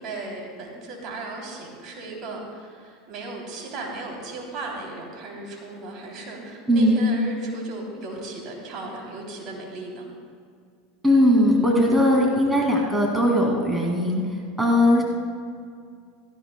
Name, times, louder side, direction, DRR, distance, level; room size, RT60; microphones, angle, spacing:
voice 1, 0.0-10.0, right 2 dB, 50° right, -1 dB, 3.0 m, -36 dB
voice 2, 6.7-7.0 11.0-14.2 14.6-15.0, left 1 dB, 10° right, -2 dB, 2.3 m, -19 dB
17.0 x 14.0 x 2.2 m, 2.2 s
hypercardioid pair, 95°, 0 cm